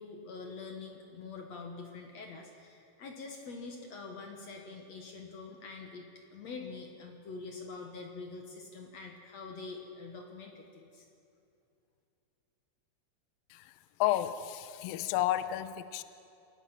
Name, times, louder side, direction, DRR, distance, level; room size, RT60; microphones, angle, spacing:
voice 1, 0.0-11.1, left 4 dB, 60° left, 2 dB, 1.9 m, -45 dB
voice 2, 14.0-16.0, left 13 dB, 80° left, 13 dB, 2.1 m, -31 dB
27.0 x 17.5 x 5.9 m, 2.6 s
omnidirectional pair, 4.7 m